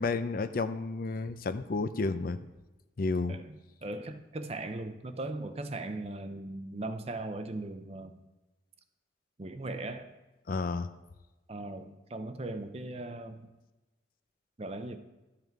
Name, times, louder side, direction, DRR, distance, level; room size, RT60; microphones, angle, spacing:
voice 1, 0.0-2.4 3.0-3.4 10.5-10.9, left 3 dB, 50° left, 11 dB, 0.4 m, -31 dB
voice 2, 3.3-8.2 9.4-10.1 11.5-13.5 14.6-15.0, right 2 dB, 30° right, 9 dB, 0.6 m, -39 dB
12.5 x 5.7 x 4.6 m, 1.1 s
head